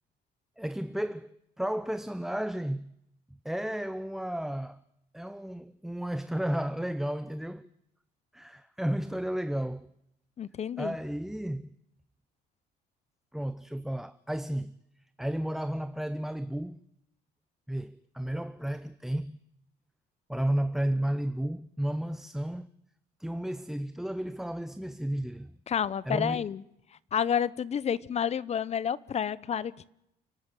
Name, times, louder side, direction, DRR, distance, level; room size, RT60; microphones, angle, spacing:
voice 1, 0.6-2.9 3.4-4.8 5.1-7.7 8.3-9.9 10.8-11.7 13.3-14.8 15.2-16.8 17.7-19.4 20.3-22.7 23.2-25.5 26.1-26.4, right 1 dB, ahead, 0.7 m, -33 dB
voice 2, 10.4-10.9 25.7-26.6 27.1-29.9, left 8 dB, 40° left, 0.8 m, -30 dB
29.0 x 12.5 x 9.0 m
cardioid pair, 110°, 17 cm